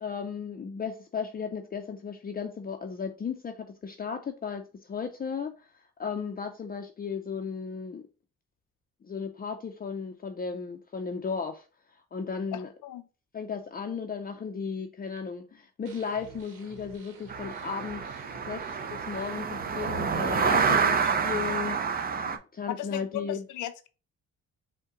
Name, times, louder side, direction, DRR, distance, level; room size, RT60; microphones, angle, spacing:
voice 1, 0.0-5.7 6.0-8.0 9.0-11.7 12.1-12.7 13.3-18.0 18.3-23.4, left 6 dB, 30° left, 0.5 m, -35 dB
voice 2, 12.5-13.1 22.7-23.9, left 12 dB, 85° left, 0.6 m, -36 dB
sound 1, 15.9-20.2, right 5 dB, 90° right, 0.9 m, -51 dB
sound 2, 17.3-22.4, right 6 dB, 30° right, 0.6 m, -28 dB
5.4 x 2.2 x 3.8 m
cardioid pair, 90°, 30 cm